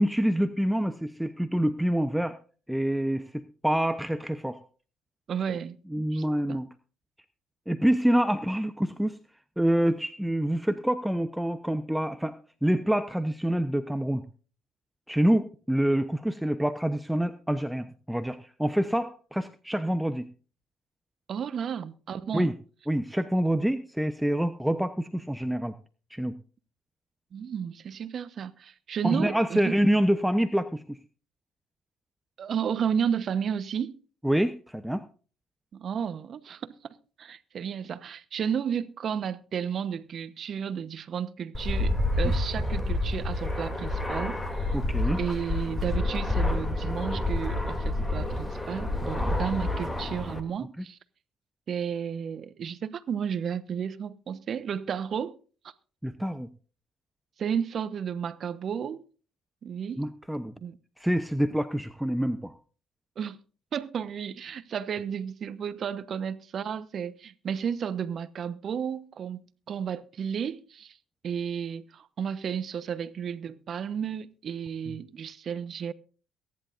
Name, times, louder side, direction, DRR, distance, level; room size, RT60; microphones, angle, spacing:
voice 1, 0.0-2.4 2.7-4.6 5.9-6.7 7.7-9.2 9.6-12.3 12.6-14.2 15.1-20.3 22.3-22.5 22.9-25.8 26.1-26.4 29.0-31.0 34.2-35.0 42.2-42.3 44.7-45.2 50.8-50.9 56.0-56.5 60.0-60.5 61.0-62.5, equal, 5° right, 0.9 m, -26 dB
voice 2, 5.3-6.6 21.3-22.5 27.3-29.7 32.4-34.0 35.7-44.8 45.2-51.0 51.7-55.4 57.4-59.0 59.6-60.1 60.6-60.8 63.2-63.4 63.7-69.4 69.7-71.0 71.2-75.9, right 7 dB, 55° right, 1.0 m, -33 dB
Fixed-wing aircraft airplane, 41.5-50.4, left 1 dB, 15° left, 2.7 m, -28 dB
23.0 x 10.5 x 2.6 m
supercardioid pair, 65°, 0 cm